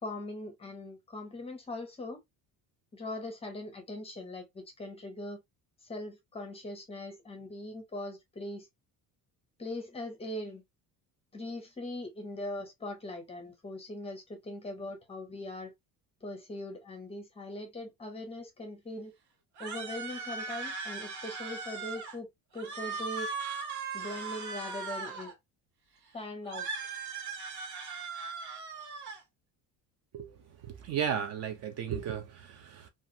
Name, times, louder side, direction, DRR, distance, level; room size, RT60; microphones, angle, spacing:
voice 1, 0.0-2.2 2.9-5.4 5.8-8.7 9.6-10.6 11.3-15.7 16.2-19.1 19.6-22.3 22.5-23.3 23.9-25.3 26.1-27.0, left 1 dB, 15° left, 0.6 m, -41 dB
sound 1, 19.6-22.2 22.5-25.3 26.5-29.2, right 4 dB, 85° right, 1.2 m, -38 dB
voice 2, 30.6-32.9, right 8 dB, 45° right, 0.5 m, -34 dB
2.9 x 2.4 x 2.5 m
cardioid pair, 175°, 37 cm